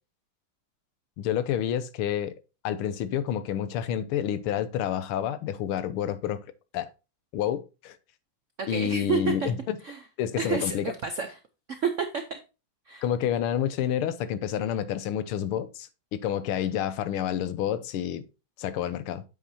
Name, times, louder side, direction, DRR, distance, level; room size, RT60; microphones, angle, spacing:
voice 1, 1.2-2.3 2.6-6.4 6.7-6.9 7.3-8.0 8.7-9.8 10.2-10.9 13.0-18.2 18.6-19.2, left 10 dB, 85° left, 1.6 m, -29 dB
voice 2, 8.6-9.5 9.8-10.0 10.4-11.4 11.8-12.4 12.9-13.0, right 5 dB, 70° right, 0.7 m, -29 dB
8.7 x 7.4 x 2.8 m
omnidirectional pair, 2.3 m